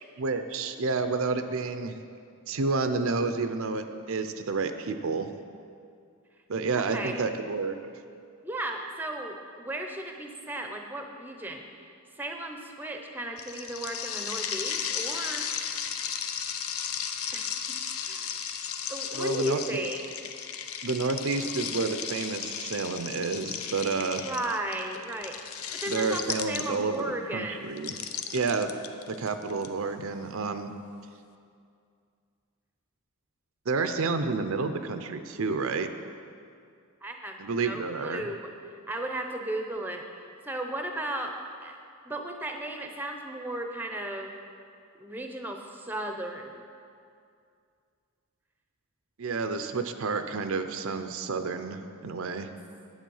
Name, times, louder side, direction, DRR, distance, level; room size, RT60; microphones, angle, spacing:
voice 1, 0.2-2.0 2.5-5.3 6.5-7.8 19.1-19.6 20.8-24.2 25.9-28.0 28.3-28.7 29.1-30.7 33.7-35.9 37.4-38.2 49.2-52.5, right 4 dB, 65° right, 8 dB, 0.6 m, -30 dB
voice 2, 6.9-7.3 8.4-11.6 12.1-15.4 17.3-17.5 17.9-18.3 18.9-20.0 24.2-25.4 25.7-27.7 37.0-38.4 38.9-40.0 40.5-41.3 41.6-41.8 42.0-44.3 45.0-46.6, right 1 dB, 10° right, 3 dB, 0.7 m, -35 dB
sound 1, 13.4-27.0 27.8-29.7, left 8 dB, 70° left, 0.6 m, -35 dB
10.5 x 8.0 x 5.5 m, 2.4 s
head